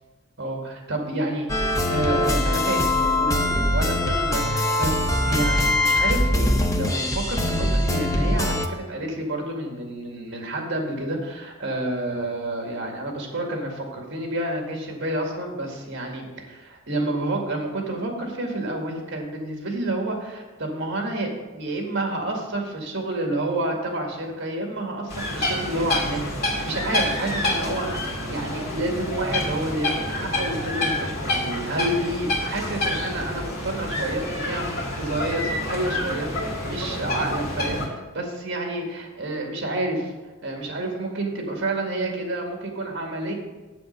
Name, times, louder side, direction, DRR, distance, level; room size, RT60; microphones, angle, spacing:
voice 1, 0.4-16.3 16.7-40.1 40.4-43.3, right 1 dB, 55° right, 1 dB, 2.0 m, -29 dB
sound 1, 1.5-8.7, left 1 dB, 15° left, 0.7 m, -22 dB
sound 2, 25.1-37.9, left 1 dB, 50° left, 2.4 m, -28 dB
7.9 x 7.7 x 5.3 m, 1.2 s
head